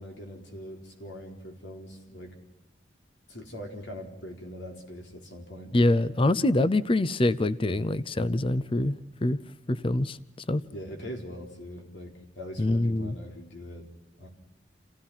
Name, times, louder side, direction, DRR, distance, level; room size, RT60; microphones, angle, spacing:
voice 1, 0.0-2.4 3.3-5.8 10.7-13.9 14.2-14.3, equal, 80° left, 4.2 m, -42 dB
voice 2, 5.7-9.4 9.7-10.2 10.5-10.6 12.6-13.2, left 1 dB, 30° left, 0.6 m, -25 dB
28.5 x 16.0 x 5.7 m
head